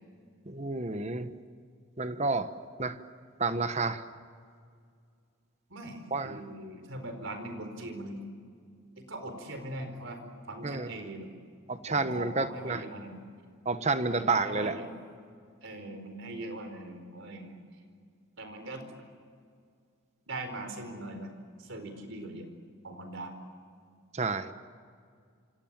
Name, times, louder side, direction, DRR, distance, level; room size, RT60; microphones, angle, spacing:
voice 1, 0.5-1.3 2.0-2.5 2.8-3.0 3.4-4.0 6.1-6.4 10.6-10.9 11.7-12.8 13.6-14.7 24.1-24.5, right 3 dB, 30° right, 10 dB, 1.2 m, -30 dB
voice 2, 5.7-8.2 9.0-10.2 10.5-11.3 11.9-13.2 14.1-15.0 15.6-17.5 18.4-18.8 20.3-21.3 21.6-22.5 22.8-23.3, right 1 dB, 60° right, 6 dB, 4.5 m, -41 dB
27.5 x 27.0 x 7.5 m, 2.2 s
head